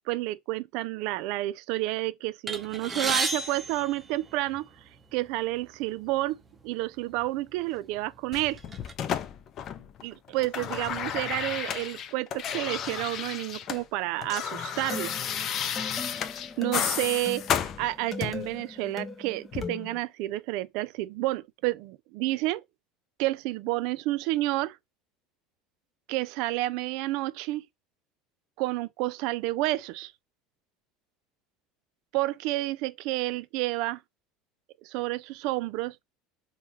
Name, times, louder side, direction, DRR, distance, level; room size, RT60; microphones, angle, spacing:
voice 1, 0.1-4.7 5.1-6.4 6.6-8.6 10.0-15.1 16.6-22.6 23.2-24.8 26.1-27.7 28.6-30.1 32.1-34.0 34.8-36.0, right 18 dB, 70° right, 0.3 m, -30 dB
sound 1, 2.5-4.8 5.6-5.8 6.1-6.3 7.1-7.3 7.8-8.9, right 3 dB, 20° right, 0.7 m, -33 dB
sound 2, 8.3-10.0 10.3-13.8 14.1-18.5 19.5-19.7, left 8 dB, 45° left, 0.4 m, -32 dB
sound 3, 14.5-20.0, left 3 dB, 15° left, 0.8 m, -40 dB
3.6 x 2.2 x 2.8 m
supercardioid pair, 105°, 0 cm